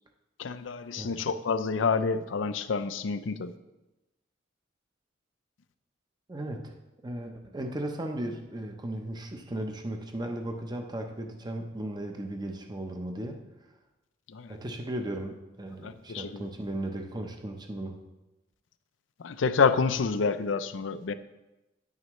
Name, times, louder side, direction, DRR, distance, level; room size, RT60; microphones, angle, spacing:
voice 1, 0.4-3.5 14.3-14.5 15.8-16.5 19.2-21.1, left 5 dB, 90° left, 12 dB, 0.5 m, -28 dB
voice 2, 6.3-6.6 7.0-13.4 14.5-18.0, right 1 dB, 20° right, 4 dB, 0.8 m, -36 dB
9.9 x 9.4 x 3.1 m, 1.0 s
head